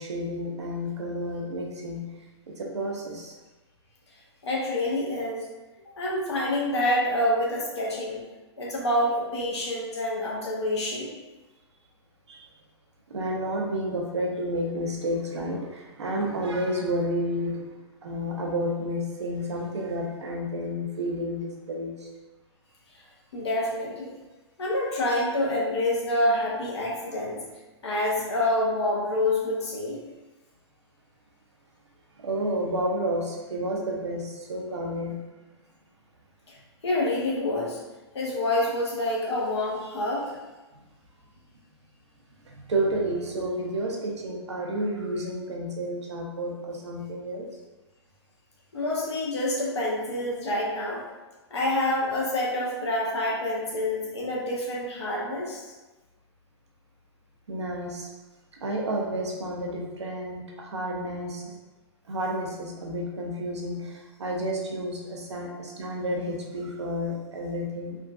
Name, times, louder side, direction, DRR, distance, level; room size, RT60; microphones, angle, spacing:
voice 1, 0.0-2.1 2.5-3.3 12.3-12.5 13.1-17.6 18.0-22.1 32.2-35.2 42.5-47.5 57.5-58.1 58.6-61.5 62.1-68.0, equal, 80° right, -1 dB, 0.8 m, -30 dB
voice 2, 4.4-5.4 6.0-8.2 8.6-11.1 23.3-24.1 24.6-27.4 27.8-30.0 36.5-36.6 36.8-37.8 38.1-40.3 48.7-51.0 51.5-55.7, left 1 dB, 70° left, -4 dB, 1.0 m, -27 dB
3.6 x 2.5 x 2.4 m, 1.1 s
hypercardioid pair, 110°, 14 cm